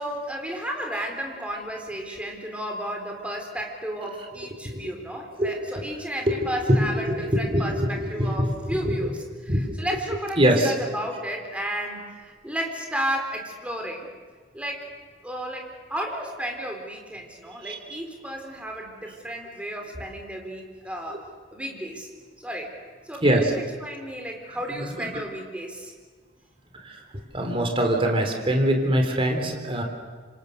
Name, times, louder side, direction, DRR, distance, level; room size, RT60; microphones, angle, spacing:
voice 1, 0.0-14.1 14.5-14.9 15.2-22.1 22.4-22.7 23.1-23.5 23.8-25.9, equal, 5° right, 2 dB, 4.1 m, -33 dB
voice 2, 6.7-9.1 9.5-9.7 10.4-10.7 17.6-17.8 23.2-23.5 25.0-25.1 27.3-29.8, equal, 30° right, 2 dB, 3.5 m, -23 dB
27.0 x 26.0 x 6.7 m, 1.5 s
head